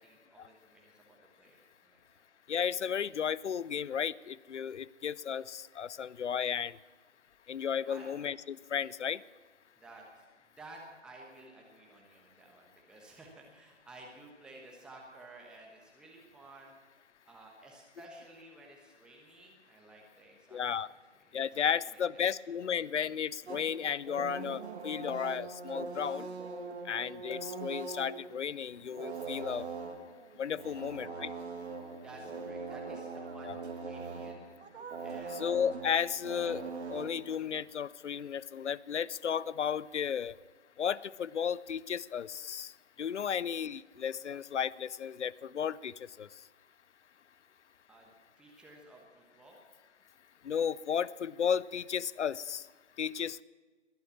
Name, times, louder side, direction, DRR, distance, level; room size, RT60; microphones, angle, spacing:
voice 1, 0.0-2.3 7.8-8.1 9.8-10.2 10.6-16.7 17.2-20.9 21.3-22.3 30.6-30.8 32.0-33.6 33.8-34.4 35.0-35.5 47.9-48.1 48.4-49.6, right 2 dB, ahead, 0 dB, 1.2 m, -54 dB
voice 2, 2.5-6.8 7.5-9.2 20.5-20.9 21.3-26.3 26.9-29.6 30.4-31.3 33.4-33.6 35.3-40.3 40.8-42.7 43.0-45.9 46.2-46.3 50.4-52.6 53.0-53.4, left 8 dB, 70° left, 22 dB, 0.6 m, -34 dB
sound 1, 23.5-37.6, right 4 dB, 65° right, 2.1 m, -42 dB
20.5 x 9.4 x 7.1 m, 1.4 s
figure-of-eight pair, 135°, 36 cm